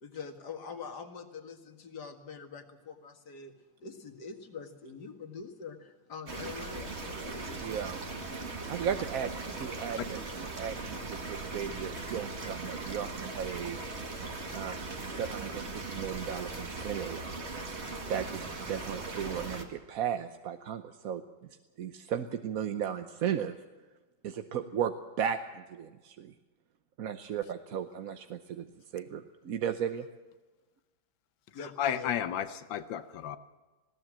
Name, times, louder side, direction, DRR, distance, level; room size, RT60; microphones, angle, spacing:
voice 1, 0.0-3.5 3.8-7.7 31.5-32.1, left 5 dB, 60° left, 6 dB, 2.4 m, -44 dB
sound 1, 6.3-19.6, right 3 dB, 35° right, 2.1 m, -39 dB
voice 2, 7.6-8.0 8.5-10.2 10.6-13.8 14.5-14.8 15.0-17.3 18.1-21.5 21.8-23.6 24.2-26.3 27.0-28.7 28.9-30.1, right 8 dB, 60° right, 8 dB, 1.1 m, -35 dB
voice 3, 31.6-33.4, left 9 dB, 90° left, 12 dB, 1.6 m, -33 dB
20.5 x 17.0 x 7.5 m, 1.2 s
omnidirectional pair, 2.0 m